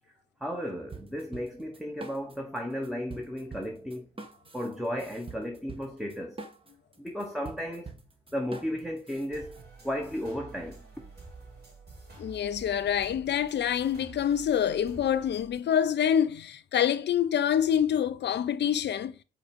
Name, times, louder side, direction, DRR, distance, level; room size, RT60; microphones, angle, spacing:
voice 1, 0.4-4.1 4.5-6.4 7.0-7.9 8.3-11.1, equal, ahead, 1.2 m, -34 dB
sound 1, 0.9-2.6 2.8-9.6, right 3 dB, 25° right, 1.4 m, -45 dB
sound 2, 9.3-15.6, right 3 dB, 50° right, 3.5 m, -49 dB
voice 2, 12.2-19.1, left 9 dB, 55° left, 0.7 m, -26 dB
5.0 x 4.2 x 5.1 m
hypercardioid pair, 50°, 21 cm